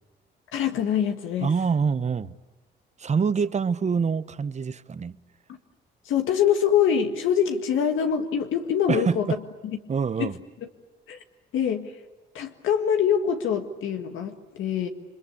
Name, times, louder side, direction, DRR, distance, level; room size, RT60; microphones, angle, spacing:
voice 1, 0.5-1.5 6.1-9.3 9.6-9.8 10.2-10.3 11.1-11.2 11.5-11.9 12.3-14.9, left 8 dB, 80° left, 1.9 m, -24 dB
voice 2, 1.4-2.3 3.0-5.2 8.9-9.2 9.9-10.4, right 5 dB, 35° right, 0.9 m, -25 dB
28.5 x 23.5 x 8.5 m
cardioid pair, 90°, 20 cm